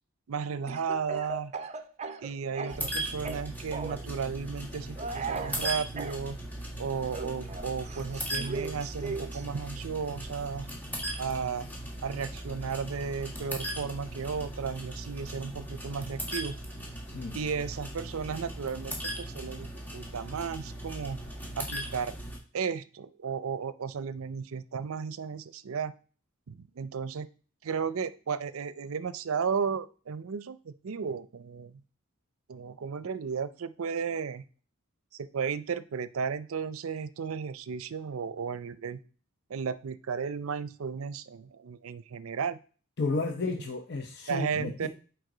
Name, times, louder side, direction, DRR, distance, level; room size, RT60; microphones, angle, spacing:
voice 1, 0.3-1.5 2.2-6.4 6.8-10.7 11.2-11.7 12.0-16.6 17.3-21.2 21.6-22.2 22.5-25.9 26.5-27.3 27.6-31.8 32.5-34.4 35.1-39.0 39.5-42.6 44.3-44.9, right 6 dB, 80° right, 15 dB, 0.5 m, -34 dB
Speech / Cough, 0.7-2.9 3.2-4.1 5.0-6.2 7.1-9.4, right 4 dB, 30° right, 0.6 m, -38 dB
sound 1, 2.7-22.4, right 1 dB, 10° left, 1.6 m, -38 dB
voice 2, 17.1-17.4 43.0-44.9, left 3 dB, 50° left, 3 dB, 0.7 m, -32 dB
7.8 x 5.0 x 3.8 m, 0.40 s
head